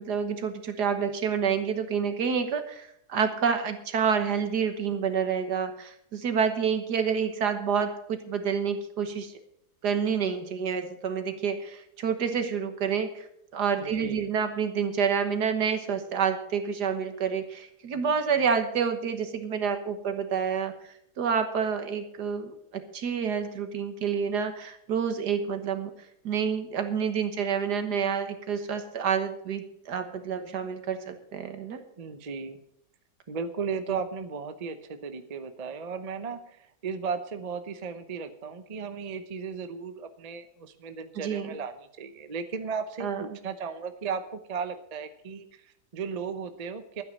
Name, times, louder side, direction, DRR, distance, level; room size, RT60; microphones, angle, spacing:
voice 1, 0.0-9.3 9.8-13.3 13.5-20.7 21.2-25.9 26.2-31.8 41.2-41.5 43.0-43.2, right 6 dB, 75° right, 8 dB, 1.9 m, -28 dB
voice 2, 13.8-14.2 32.0-32.6 33.3-47.0, right 5 dB, 35° right, 9 dB, 0.7 m, -35 dB
12.0 x 9.5 x 6.5 m, 0.72 s
omnidirectional pair, 1.8 m